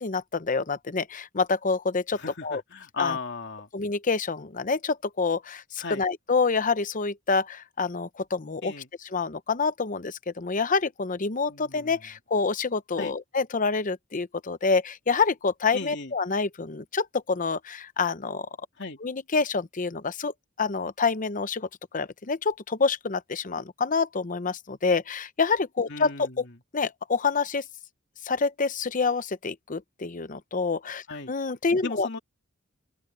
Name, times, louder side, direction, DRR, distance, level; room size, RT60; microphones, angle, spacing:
voice 1, 0.0-2.6 3.0-3.2 3.7-8.7 9.0-18.5 19.0-21.7 21.9-26.4 26.7-27.6 28.2-32.1, left 4 dB, 40° left, 0.8 m, -27 dB
voice 2, 2.1-3.7 5.8-6.0 8.6-8.9 11.5-12.0 13.0-13.1 15.7-16.1 18.8-19.0 25.9-26.4 31.1-31.3 31.8-32.2, left 4 dB, 60° left, 2.8 m, -36 dB
open air
head